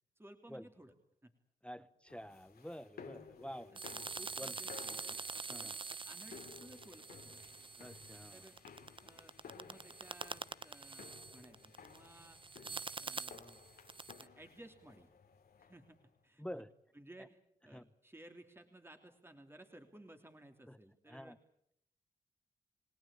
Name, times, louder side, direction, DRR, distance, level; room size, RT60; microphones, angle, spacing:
voice 1, 0.2-0.9 1.2-1.3 3.7-5.2 5.6-7.4 8.3-8.6 9.0-12.4 13.0-13.6 14.2-15.1 15.6-16.0 16.2-16.6 16.9-21.4, right 1 dB, 15° right, 5 dB, 2.9 m, -58 dB
voice 2, 1.6-3.7 4.4-4.6 5.5-5.8 7.8-8.5 16.4-16.7 17.2-17.3 17.7-17.9 20.7-20.8 21.1-21.4, equal, 5° left, 16 dB, 1.0 m, -48 dB
sound 1, 2.1-16.0, left 6 dB, 75° left, 2.9 m, -56 dB
sound 2, 3.8-14.3, right 4 dB, 30° right, 0.9 m, -46 dB
30.0 x 18.0 x 8.7 m, 0.75 s
supercardioid pair, 45°, 16 cm